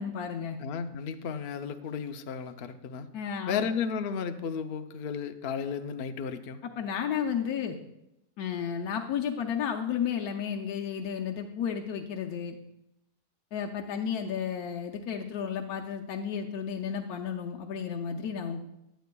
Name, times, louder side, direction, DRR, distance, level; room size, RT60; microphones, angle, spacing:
voice 1, 0.0-0.6 3.1-3.7 6.6-7.7 8.4-12.5 13.5-18.7, left 7 dB, 75° left, 1 dB, 1.2 m, -32 dB
voice 2, 0.6-3.1 3.5-6.6, left 6 dB, 60° left, 7 dB, 0.6 m, -33 dB
20.5 x 8.2 x 2.3 m, 0.86 s
omnidirectional pair, 1.7 m